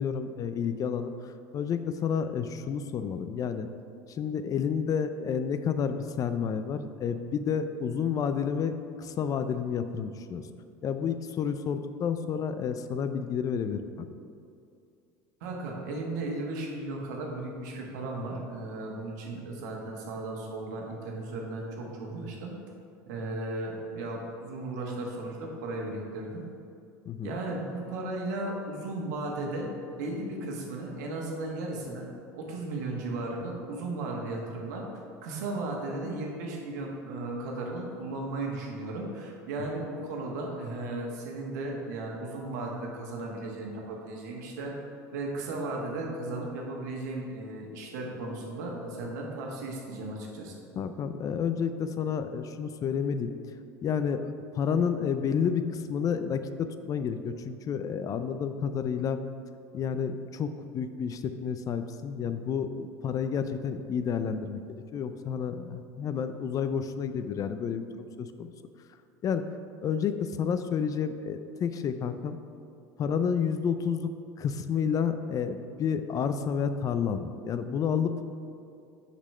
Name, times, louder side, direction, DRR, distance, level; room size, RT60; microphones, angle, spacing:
voice 1, 0.0-3.7 4.1-10.4 10.8-14.1 27.1-27.3 50.8-53.3 53.8-59.2 59.7-68.5 69.2-69.5 69.8-72.4 73.0-74.1 74.4-78.1, left 7 dB, 40° left, 10 dB, 0.4 m, -30 dB
voice 2, 15.4-22.5 23.1-26.5 27.2-32.1 32.3-34.8 35.2-44.7 45.1-50.5, right 2 dB, 80° right, 0 dB, 1.3 m, -35 dB
5.9 x 4.2 x 5.5 m, 2.4 s
supercardioid pair, 95°, 9 cm